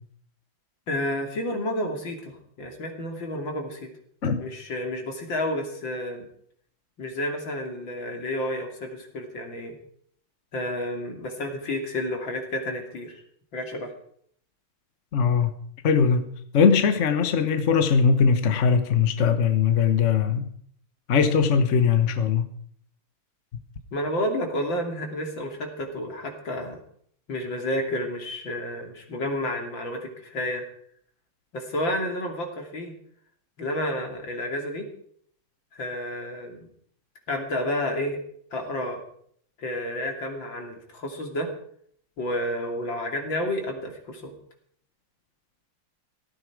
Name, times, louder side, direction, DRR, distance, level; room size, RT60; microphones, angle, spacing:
voice 1, 0.9-3.9 4.4-6.3 7.0-9.8 10.5-13.2 13.5-13.9 23.9-26.8 27.3-30.7 31.5-32.9 33.6-34.9 35.7-36.7 37.3-38.2 38.5-39.0 39.6-41.5 42.2-44.3, left 1 dB, 60° left, 3 dB, 3.5 m, -30 dB
voice 2, 15.1-15.5 15.8-20.5 21.1-22.5, left 6 dB, 45° left, 9 dB, 1.1 m, -21 dB
17.0 x 14.0 x 4.8 m, 0.63 s
omnidirectional pair, 2.3 m